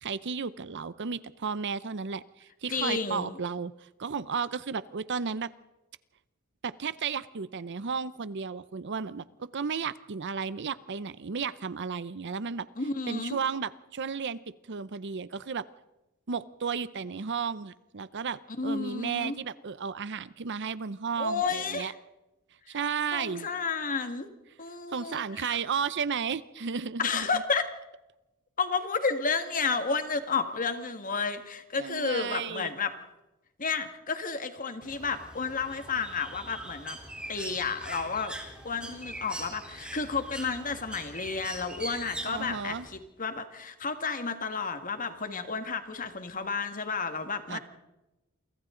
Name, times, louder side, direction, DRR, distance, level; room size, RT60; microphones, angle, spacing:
voice 1, 0.0-3.7 4.0-5.5 6.6-12.7 13.1-14.4 14.7-15.6 16.3-21.9 22.7-23.5 24.9-27.3 31.7-32.7 42.3-42.9 47.5-47.6, right 6 dB, 55° right, 16 dB, 0.7 m, -33 dB
voice 2, 2.7-3.4 12.8-13.4 18.6-19.4 21.2-21.9 22.7-22.8 23.1-24.3 24.6-25.6 27.0-27.7 28.6-32.9 33.6-37.0 37.3-38.4 38.6-47.6, left 5 dB, 40° left, 8 dB, 1.9 m, -31 dB
Bird, 34.8-42.9, right 1 dB, 5° right, 3.7 m, -42 dB
29.0 x 24.0 x 3.9 m, 0.99 s
head